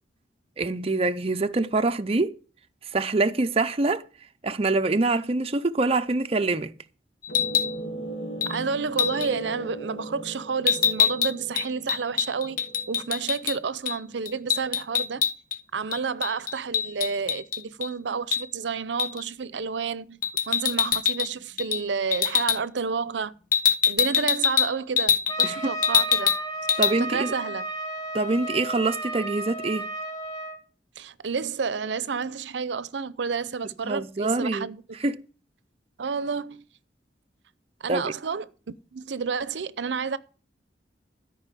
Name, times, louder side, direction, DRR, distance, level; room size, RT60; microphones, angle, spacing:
voice 1, 0.6-2.3 2.9-4.0 4.4-6.7 25.4-25.7 26.8-27.3 28.1-29.9 33.8-34.7 35.0-35.2 37.9-38.1, right 3 dB, 35° right, 0.6 m, -25 dB
sound 1, 7.2-7.7 8.4-8.6 9.0-9.3 10.7-13.6 13.8-14.0 14.2-15.6 15.9-17.9 18.3-18.4 19.0-19.2 20.2-21.3 21.6-21.8 22.1-22.6 23.5-25.5 25.8-26.4 26.7-26.9, left 8 dB, 50° left, 0.6 m, -24 dB
sound 2, 7.3-13.4, right 1 dB, 85° left, 2.6 m, -38 dB
voice 2, 8.5-12.6 12.9-15.2 15.7-23.3 23.8-26.3 27.0-27.7 31.0-34.8 36.0-36.6 37.8-40.2, right 5 dB, 85° right, 0.6 m, -30 dB
Trumpet, 25.3-30.6, right 2 dB, 20° left, 1.9 m, -33 dB
13.0 x 5.4 x 8.3 m
head